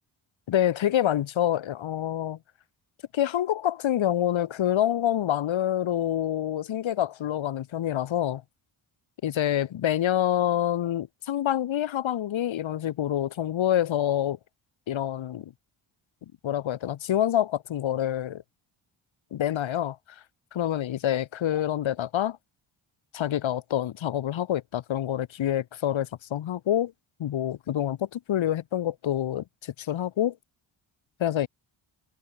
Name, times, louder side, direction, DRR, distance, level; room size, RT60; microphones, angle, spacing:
voice 1, 0.5-2.4 3.1-8.4 9.2-14.4 14.9-15.5 16.4-18.4 19.3-20.0 20.5-22.4 23.1-26.9 27.2-30.4 31.2-31.5, left 11 dB, 70° left, 1.7 m, -27 dB
cardioid pair, 65°, 49 cm